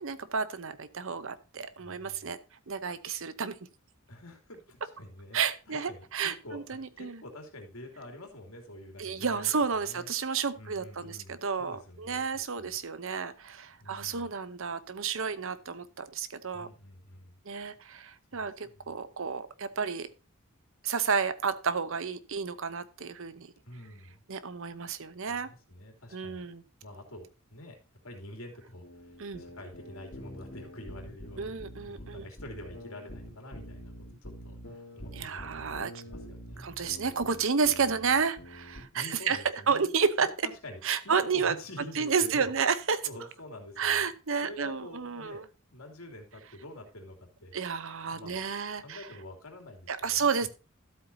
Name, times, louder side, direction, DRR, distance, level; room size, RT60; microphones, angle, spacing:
voice 1, 0.0-2.4 2.7-3.6 5.3-7.2 9.0-16.7 17.5-20.1 20.8-23.5 24.3-25.5 26.1-26.6 29.2-29.4 31.4-32.2 35.2-35.9 36.6-39.4 39.7-40.3 40.8-41.5 42.0-43.0 43.8-45.4 47.5-49.0 49.9-50.5, right 5 dB, 65° right, 14 dB, 0.8 m, -31 dB
voice 2, 1.8-2.3 4.1-12.8 13.8-14.3 16.5-17.4 18.3-19.0 23.6-24.2 25.3-26.5 26.8-33.9 34.2-37.3 38.9-39.9 40.2-42.6 43.0-44.0 44.4-47.5 48.1-48.5 48.7-50.5, left 1 dB, 70° left, 3 dB, 3.0 m, -47 dB
sound 1, 28.8-38.8, equal, 50° left, 3.4 m, -46 dB
13.0 x 8.1 x 2.8 m, 0.30 s
head